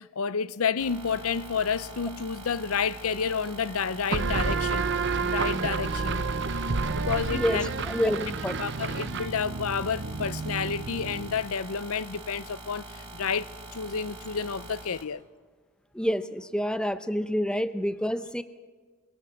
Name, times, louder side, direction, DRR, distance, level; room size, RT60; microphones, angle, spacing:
voice 1, 0.0-4.9 5.2-6.3 7.0-8.1 8.6-12.9 13.1-15.2, left 6 dB, 85° left, 0.6 m, -30 dB
sound 1, 0.8-15.0, right 2 dB, 20° right, 4.7 m, -44 dB
sound 2, 4.1-11.5, right 4 dB, 55° right, 0.7 m, -30 dB
voice 2, 7.9-8.6 15.9-18.4, equal, 5° left, 0.7 m, -28 dB
28.5 x 23.5 x 6.0 m
head